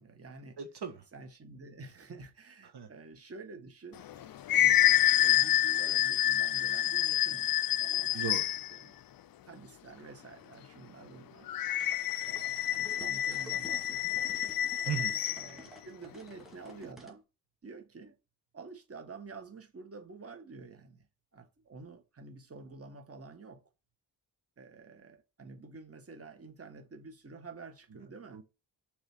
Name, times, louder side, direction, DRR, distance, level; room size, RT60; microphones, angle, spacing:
voice 1, 0.0-0.6 1.1-4.8 5.2-8.2 8.7-9.0 9.4-11.5 12.2-14.4 15.3-17.2 17.6-18.2 18.5-21.1 21.3-23.6 24.6-28.4, right 3 dB, 30° right, 1.4 m, -49 dB
voice 2, 0.6-1.1 2.7-2.9 8.1-8.5 14.9-15.2 28.3-28.4, right 7 dB, 55° right, 1.3 m, -37 dB
sound 1, 4.0-8.8 11.5-15.5, left 12 dB, 50° left, 0.5 m, -28 dB
sound 2, 11.7-17.2, right 1 dB, ahead, 2.5 m, -52 dB
6.4 x 3.3 x 6.0 m
wide cardioid pair, 120°, 46 cm